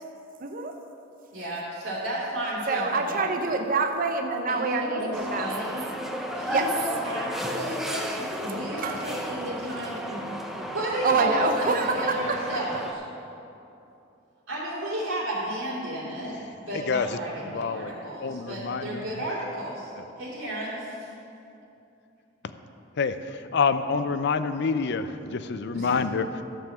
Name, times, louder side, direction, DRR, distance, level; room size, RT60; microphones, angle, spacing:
voice 1, 0.4-0.7 2.7-5.8 6.5-6.7 8.8-9.1 11.0-12.6, right 3 dB, 45° right, 4 dB, 0.7 m, -26 dB
voice 2, 1.3-3.3 4.5-5.1 5.4-5.9 6.3-10.2 10.7-13.0 14.5-19.9 20.2-21.1 25.7-25.9, right 1 dB, 80° right, -8 dB, 2.7 m, -33 dB
sound 1, 5.1-12.9, equal, ahead, 0.8 m, -34 dB
voice 3, 16.7-17.2 17.4-17.9 18.2-19.1 20.0-20.1 23.0-26.4, left 5 dB, 60° left, 11 dB, 0.5 m, -27 dB
13.5 x 5.6 x 7.2 m, 2.8 s
head